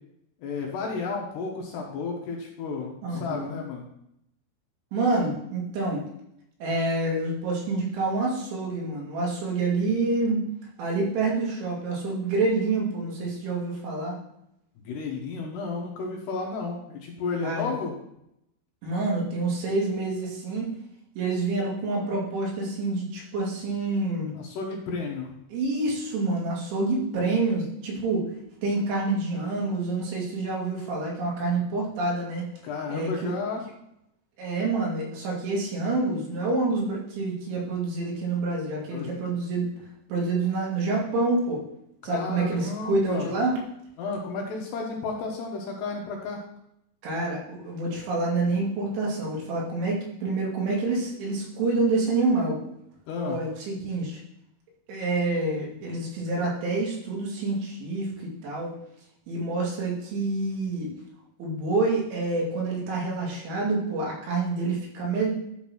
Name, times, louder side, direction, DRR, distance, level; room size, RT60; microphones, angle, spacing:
voice 1, 0.4-3.9 14.8-17.9 24.3-25.3 32.6-33.6 38.9-39.2 42.0-43.3 44.0-46.4 53.1-53.4 53.8-53.9, left 4 dB, 70° left, 0 dB, 2.9 m, -32 dB
voice 2, 3.0-3.6 4.9-6.1 6.6-10.5 10.8-14.2 17.4-17.8 18.8-20.7 21.2-24.3 25.5-28.2 28.6-32.4 32.9-33.3 34.4-39.7 40.1-41.6 42.0-43.5 47.0-52.6 53.3-54.2 54.9-58.8 59.3-60.9 61.4-65.3, right 3 dB, 75° right, -3 dB, 4.6 m, -27 dB
12.0 x 4.0 x 6.1 m, 0.78 s
omnidirectional pair, 5.6 m